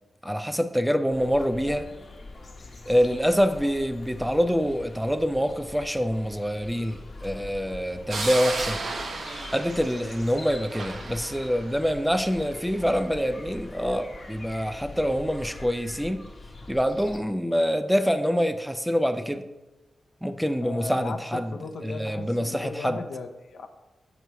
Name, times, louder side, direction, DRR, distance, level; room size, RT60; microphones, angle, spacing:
voice 1, 0.2-1.9 2.9-9.2 9.5-16.3 16.7-19.4 20.2-21.5 21.8-23.0, equal, ahead, 9 dB, 0.4 m, -26 dB
sound 1, 1.1-17.2, left 2 dB, 40° left, 0.9 m, -43 dB
sound 2, 8.1-12.6, right 3 dB, 60° right, 0.8 m, -34 dB
voice 2, 20.6-21.2 21.5-23.7, left 4 dB, 85° left, 6 dB, 0.6 m, -36 dB
8.0 x 3.1 x 5.5 m, 1.0 s
wide cardioid pair, 140°, 0 cm